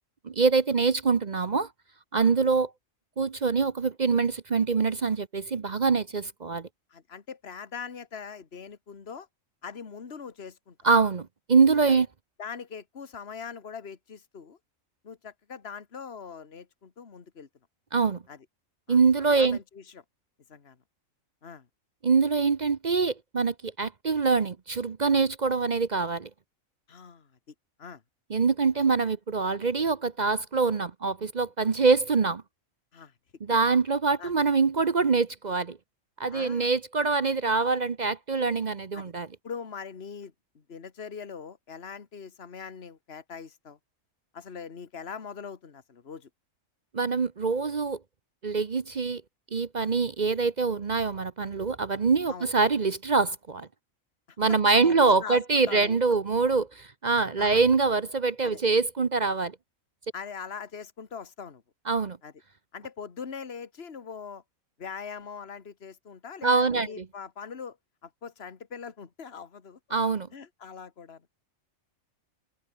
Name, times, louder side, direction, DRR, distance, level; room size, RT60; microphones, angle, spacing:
voice 1, 0.2-1.7 2.1-2.7 3.2-6.7 10.8-12.1 17.9-18.2 18.9-19.6 22.0-26.3 28.3-32.4 33.4-35.8 36.2-39.3 46.9-48.0 48.4-49.2 49.5-53.7 54.4-59.5 61.9-62.2 66.4-67.0 69.9-70.3, right 4 dB, 40° right, 0.8 m, -24 dB
voice 2, 6.9-9.3 9.6-10.8 11.9-12.0 12.4-14.6 15.0-17.5 18.3-18.5 18.9-20.0 20.5-20.8 21.4-21.7 26.9-28.0 31.6-31.7 32.9-33.1 33.5-33.6 34.2-34.3 36.3-36.7 37.0-37.1 38.9-39.1 39.4-43.8 44.3-46.3 52.3-52.5 54.3-56.0 57.4-57.7 58.4-58.6 60.1-61.6 62.2-62.3 62.7-64.4 64.8-67.8 68.0-69.8 70.3-71.2, left 6 dB, 50° left, 1.9 m, -42 dB
omnidirectional pair, 1.4 m